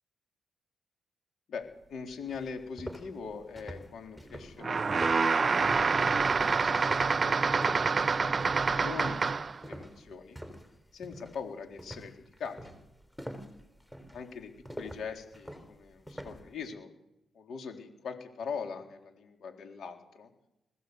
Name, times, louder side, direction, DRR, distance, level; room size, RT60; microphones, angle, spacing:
voice 1, 1.5-5.6 5.8-9.2 9.6-10.4 10.9-12.7 14.1-16.9 17.3-20.3, left 5 dB, 70° left, 4 dB, 3.9 m, -42 dB
sound 1, 1.8-1.9 2.3-10.7 11.0-11.4 11.8-16.5, equal, 5° left, 4.1 m, -45 dB
sound 2, 4.6-9.6, right 4 dB, 40° right, 0.7 m, -27 dB
21.5 x 16.5 x 8.1 m, 0.84 s
cardioid pair, 80°, 0 cm